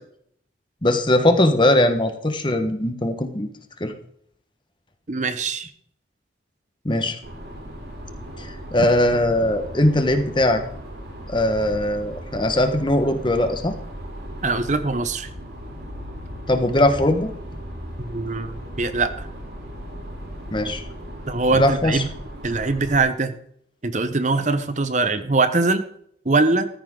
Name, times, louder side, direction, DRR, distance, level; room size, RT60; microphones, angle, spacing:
voice 1, 0.8-3.5 3.8-3.9 6.8-7.2 8.4-10.6 11.3-13.7 16.5-17.3 20.5-20.8 21.6-22.0, left 1 dB, 25° left, 7 dB, 1.4 m, -20 dB
voice 2, 5.1-5.7 14.4-15.3 18.0-19.3 21.3-22.1 22.4-23.3 23.8-25.8 26.2-26.7, right 3 dB, 40° right, 11 dB, 0.9 m, -22 dB
sound 1, 7.2-23.0, equal, 65° right, 4.9 m, -37 dB
14.5 x 14.0 x 3.8 m, 0.66 s
head